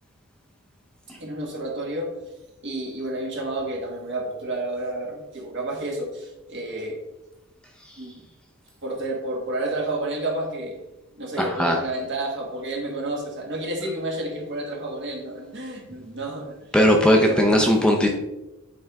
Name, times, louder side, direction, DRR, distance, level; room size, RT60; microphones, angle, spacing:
voice 1, 1.2-2.1 2.6-7.0 8.0-8.2 8.8-10.8 11.2-16.5 17.2-17.6, right 2 dB, 55° right, 0 dB, 1.4 m, -30 dB
voice 2, 11.4-11.8 16.7-18.1, equal, 5° left, 1 dB, 0.5 m, -18 dB
8.6 x 3.4 x 3.5 m, 0.99 s
head